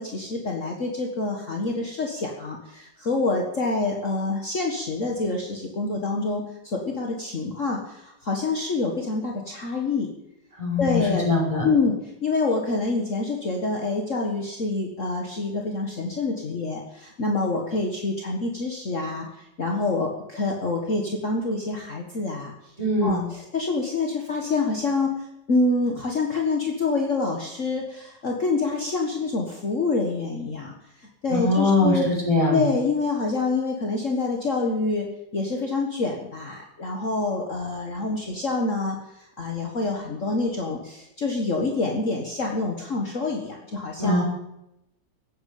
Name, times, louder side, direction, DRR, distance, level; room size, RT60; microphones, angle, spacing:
voice 1, 0.0-10.1 10.8-11.3 11.6-22.5 23.0-25.2 25.5-30.7 31.2-32.1 32.5-44.2, left 3 dB, 45° left, 1 dB, 1.9 m, -26 dB
voice 2, 10.6-11.7 22.8-23.3 31.3-32.6 44.0-44.2, left 2 dB, 15° right, -3 dB, 5.6 m, -22 dB
15.0 x 9.3 x 8.5 m, 0.85 s
omnidirectional pair, 2.0 m